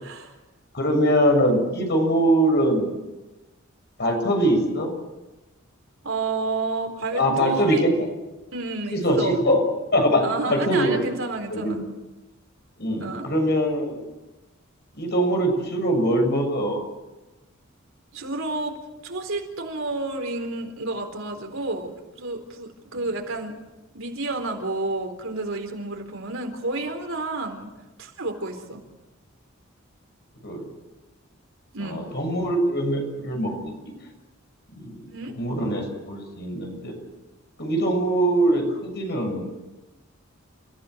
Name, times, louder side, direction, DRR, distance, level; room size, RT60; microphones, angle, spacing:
voice 1, 0.7-2.9 4.0-4.9 7.1-8.1 8.9-9.6 9.9-11.1 11.5-11.8 12.8-14.0 14.9-16.8 22.9-23.0 30.4-30.6 31.8-33.7 34.8-36.9 37.6-39.4, right 1 dB, 55° left, 3 dB, 7.0 m, -22 dB
voice 2, 6.0-7.8 8.5-9.4 10.2-11.8 13.0-13.3 18.1-18.8 19.0-23.6 23.9-27.7 28.0-28.8 31.7-32.0 35.1-35.3, right 2 dB, 75° right, 4 dB, 4.1 m, -30 dB
29.5 x 15.5 x 8.1 m, 1.1 s
head